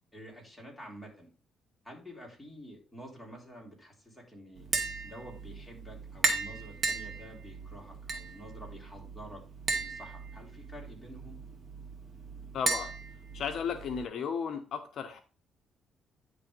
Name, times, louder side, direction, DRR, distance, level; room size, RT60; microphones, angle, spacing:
voice 1, 0.1-1.3 1.8-4.7 5.0-9.4 9.7-11.4, equal, 5° left, -2 dB, 3.6 m, -49 dB
Tap, 4.6-14.0, right 3 dB, 40° right, 1.6 m, -36 dB
voice 2, 12.5-12.9 13.3-15.2, left 6 dB, 65° left, 7 dB, 0.9 m, -34 dB
9.9 x 3.4 x 5.3 m, 0.35 s
cardioid pair, 90°, 0 cm